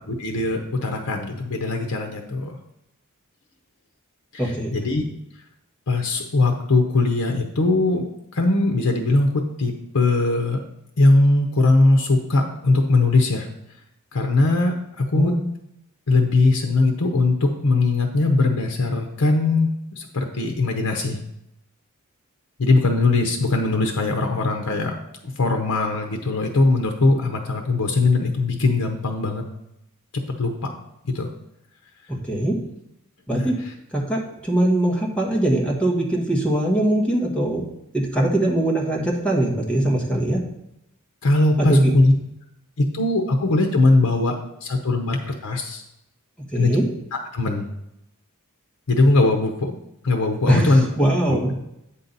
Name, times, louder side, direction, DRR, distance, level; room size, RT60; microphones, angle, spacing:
voice 1, 0.1-2.6 4.3-5.0 5.9-10.6 11.0-13.5 14.1-15.4 16.1-21.2 22.6-24.9 25.4-29.4 30.1-30.7 31.0-31.3 33.3-33.7 41.2-42.1 42.8-45.8 46.5-46.8 47.3-47.7 48.9-49.7 50.0-50.8 51.3-51.5, left 2 dB, 85° left, 4 dB, 0.8 m, -20 dB
voice 2, 4.4-4.7 15.1-15.4 32.3-32.5 33.3-33.5 33.9-37.6 37.9-40.4 41.6-41.9 46.5-46.8 50.5-51.5, right 1 dB, 5° left, -2 dB, 1.3 m, -21 dB
8.3 x 5.7 x 4.0 m, 0.83 s
head